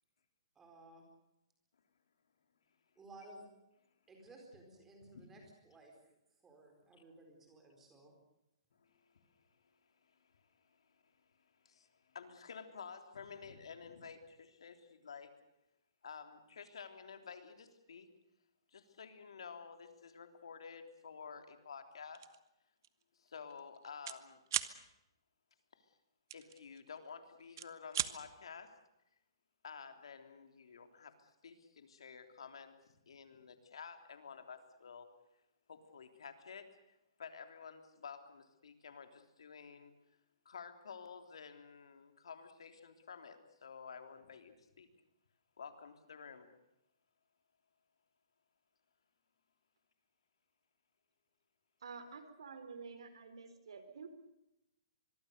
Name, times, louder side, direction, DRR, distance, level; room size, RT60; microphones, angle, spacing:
voice 1, 0.6-1.0 3.0-3.5 4.1-5.9 6.4-8.1, right 2 dB, 10° right, 2 dB, 4.3 m, -57 dB
voice 2, 8.8-9.5 10.0-11.1 11.4-15.3 16.0-18.1 18.7-22.2 23.1-24.4 25.7-25.9 26.3-28.7 29.6-32.8 33.1-35.1 35.7-39.9 40.5-44.9 45.6-46.5, left 6 dB, 75° left, 7 dB, 3.4 m, -52 dB
sound 1, 22.2-22.4 22.8-23.0 23.3-24.2 24.5-24.7 26.3-27.1 27.4-28.1, right 10 dB, 40° right, 1.1 m, -38 dB
voice 3, 51.8-54.1, right 5 dB, 75° right, 10 dB, 4.1 m, -50 dB
25.0 x 22.5 x 6.8 m, 0.88 s
hypercardioid pair, 175°, 3 cm